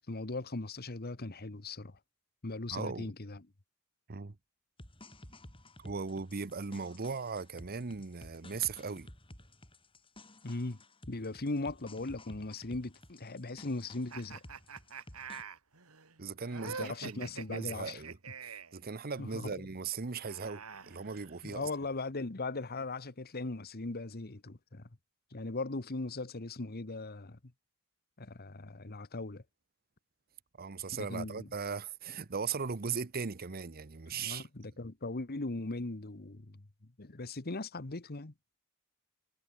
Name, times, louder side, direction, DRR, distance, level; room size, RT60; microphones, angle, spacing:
voice 1, 0.0-2.0 2.4-3.5 10.4-10.8 11.1-14.4 16.6-18.0 19.2-19.6 21.4-24.9 25.3-27.4 28.2-29.4 30.9-31.5 34.1-36.6 37.0-38.3, left 2 dB, 45° left, 1.3 m, -39 dB
voice 2, 2.7-3.1 4.1-4.4 5.8-9.1 16.2-18.2 18.4-21.7 30.6-34.5, right 5 dB, 45° right, 0.8 m, -38 dB
sound 1, 4.8-15.4, left 1 dB, 25° left, 6.4 m, -54 dB
sound 2, 14.1-18.8 20.0-21.7, right 5 dB, 75° right, 2.7 m, -46 dB
head